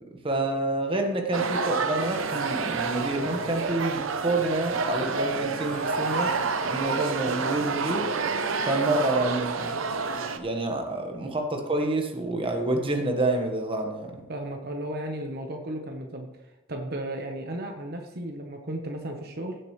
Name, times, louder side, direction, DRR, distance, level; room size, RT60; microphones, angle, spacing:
voice 1, 0.2-6.3 6.6-8.1 8.6-9.7 10.3-14.1, right 2 dB, 25° right, 3 dB, 1.5 m, -28 dB
sound 1, 1.3-10.4, right 4 dB, 85° right, 0.8 m, -29 dB
sound 2, 1.9-3.8 5.4-7.1, equal, 5° left, 2.7 m, -47 dB
voice 2, 14.3-16.3 16.7-19.6, right 1 dB, 50° right, 3 dB, 1.2 m, -34 dB
16.0 x 7.7 x 3.3 m, 1.0 s
head